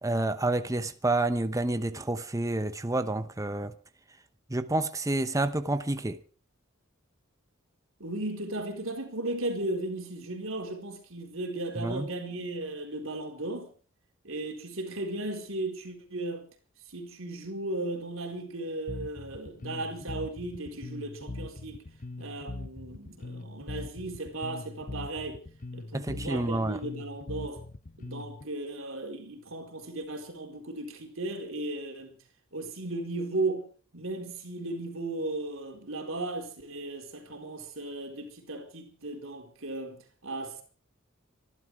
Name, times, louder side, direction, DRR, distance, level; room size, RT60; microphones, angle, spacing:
voice 1, 0.0-3.7 4.5-6.2 11.8-12.1 25.9-26.8, right 2 dB, 15° right, 0.9 m, -29 dB
voice 2, 8.0-13.7 14.2-16.4 16.9-21.8 22.2-25.4 25.7-27.6 28.0-32.2 32.5-33.7 33.9-40.6, right 2 dB, 70° right, 4.4 m, -36 dB
Bass guitar, 18.9-28.4, left 2 dB, 40° left, 0.8 m, -41 dB
25.0 x 12.0 x 4.8 m
head